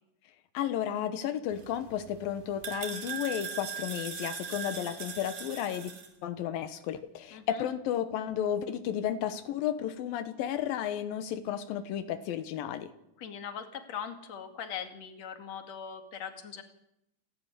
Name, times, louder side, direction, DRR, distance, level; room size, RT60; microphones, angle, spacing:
voice 1, 0.5-5.9 6.2-12.9, left 10 dB, 90° left, 10 dB, 2.9 m, -33 dB
sound 1, 1.5-6.1, right 6 dB, 65° right, 4.3 m, -40 dB
voice 2, 7.3-7.7 13.2-16.6, left 8 dB, 50° left, 6 dB, 3.2 m, -40 dB
29.5 x 12.5 x 9.8 m, 0.83 s
omnidirectional pair, 4.1 m